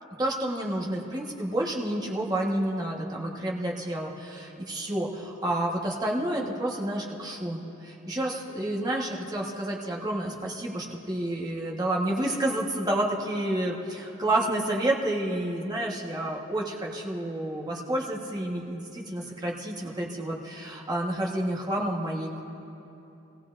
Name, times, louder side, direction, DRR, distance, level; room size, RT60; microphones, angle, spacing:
voice 1, 0.2-22.4, right 1 dB, 20° right, -2 dB, 1.3 m, -30 dB
22.5 x 16.0 x 2.6 m, 2.9 s
head